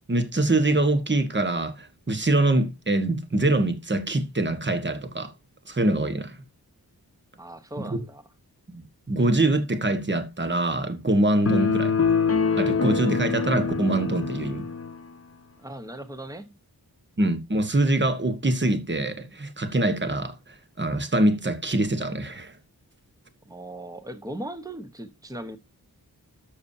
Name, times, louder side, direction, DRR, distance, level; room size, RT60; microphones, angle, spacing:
voice 1, 0.1-5.3 5.7-6.4 7.8-8.0 8.7-11.9 12.6-14.7 17.2-22.5, right 2 dB, 30° right, 1.4 m, -24 dB
voice 2, 7.4-8.2 15.6-16.5 23.5-25.6, right 1 dB, 10° right, 1.1 m, -38 dB
sound 1, 11.5-15.0, left 5 dB, 40° left, 0.8 m, -24 dB
13.0 x 7.0 x 2.7 m
wide cardioid pair, 80°, 37 cm